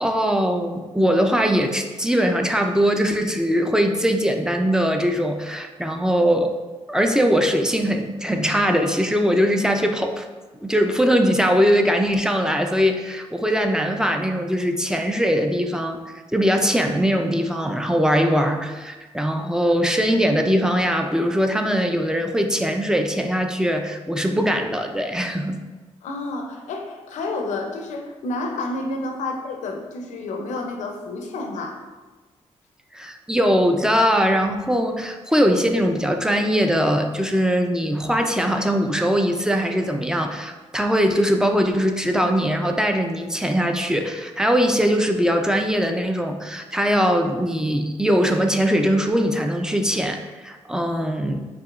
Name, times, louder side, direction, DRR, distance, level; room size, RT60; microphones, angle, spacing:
voice 1, 0.0-6.5 6.9-10.3 10.6-16.0 16.3-25.6 32.9-51.5, equal, 5° right, 5 dB, 0.3 m, -21 dB
voice 2, 26.0-31.8, left 2 dB, 90° left, 3 dB, 0.6 m, -30 dB
4.7 x 2.9 x 2.4 m, 1.3 s
cardioid pair, 85°, 12 cm